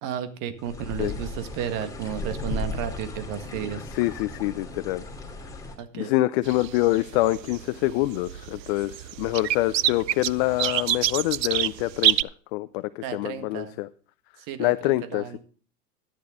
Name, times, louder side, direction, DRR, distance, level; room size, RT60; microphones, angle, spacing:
voice 1, 0.0-3.8 5.8-6.1 13.0-13.7 14.5-15.4, right 8 dB, 40° right, 9 dB, 1.7 m, -33 dB
sound 1, 0.6-5.7, left 2 dB, 5° left, 3.0 m, -36 dB
voice 2, 3.8-5.0 5.9-12.2 12.5-13.9 14.6-15.4, left 18 dB, 40° left, 14 dB, 0.6 m, -26 dB
sound 2, 6.5-12.2, right 12 dB, 85° right, 0.6 m, -27 dB
13.5 x 10.0 x 3.6 m, 0.40 s
hypercardioid pair, 110°, 49 cm